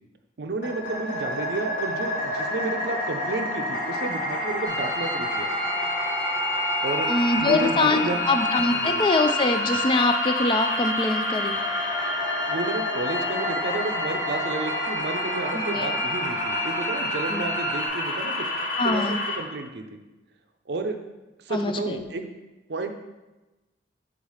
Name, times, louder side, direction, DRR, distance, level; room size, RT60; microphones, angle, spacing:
voice 1, 0.4-5.5 6.8-7.1 7.4-8.2 8.7-9.0 12.5-18.5 18.8-20.0 20.7-21.0 21.4-22.2 22.7-22.9, right 3 dB, 60° right, 6 dB, 0.5 m, -31 dB
sound 1, 0.6-19.4, left 1 dB, 45° left, 1.3 m, -29 dB
sound 2, 4.6-17.9, left 1 dB, 75° left, 1.6 m, -32 dB
voice 2, 7.1-11.6 15.5-15.9 17.3-17.4 18.8-19.2 21.5-22.0, left 2 dB, 25° left, 7 dB, 0.3 m, -24 dB
4.8 x 3.9 x 5.5 m, 1.1 s
head